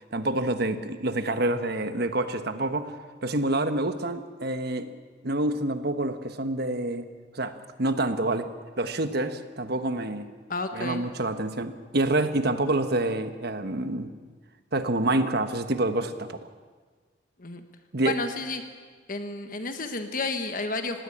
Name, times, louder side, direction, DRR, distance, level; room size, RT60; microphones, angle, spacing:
voice 1, 0.1-4.9 5.2-7.0 7.3-8.5 8.8-10.3 10.7-14.1 14.7-16.4 17.9-18.1, right 2 dB, 55° right, 9 dB, 1.3 m, -27 dB
voice 2, 10.5-11.0 17.4-17.6 18.0-18.6 19.1-21.0, left 3 dB, 45° left, 7 dB, 1.3 m, -31 dB
20.0 x 17.0 x 8.7 m, 1.5 s
head